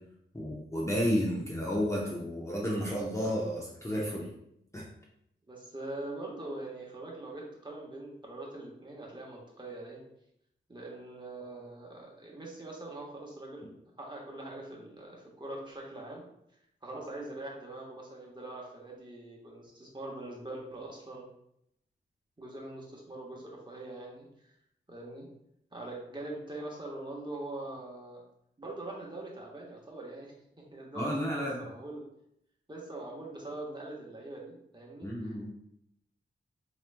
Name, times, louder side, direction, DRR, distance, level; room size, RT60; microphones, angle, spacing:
voice 1, 0.3-4.3 4.7-4.9 30.9-31.7 35.0-35.5, equal, 15° left, -4 dB, 0.8 m, -31 dB
voice 2, 5.5-10.0 10.7-13.7 14.0-16.2 16.8-21.2 22.4-24.5 24.9-25.3 25.7-28.2 28.6-32.0 32.7-35.5, right 2 dB, 20° right, -3 dB, 1.2 m, -43 dB
4.6 x 3.0 x 2.2 m, 0.76 s
cardioid pair, 55°, 21 cm